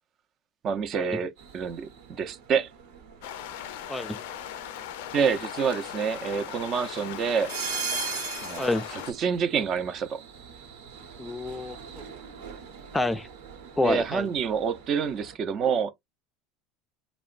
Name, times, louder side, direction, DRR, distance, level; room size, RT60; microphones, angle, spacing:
voice 1, 0.6-2.7 5.1-7.5 8.4-10.2 13.8-15.9, right 6 dB, 45° right, 0.5 m, -27 dB
sound 1, 1.4-15.4, right 6 dB, 80° right, 1.0 m, -41 dB
sound 2, 3.2-9.1, left 11 dB, 80° left, 0.4 m, -38 dB
voice 2, 11.2-12.0 12.9-13.3 13.8-14.3, left 2 dB, 10° left, 0.4 m, -28 dB
3.0 x 2.1 x 2.4 m
supercardioid pair, 105°, 0 cm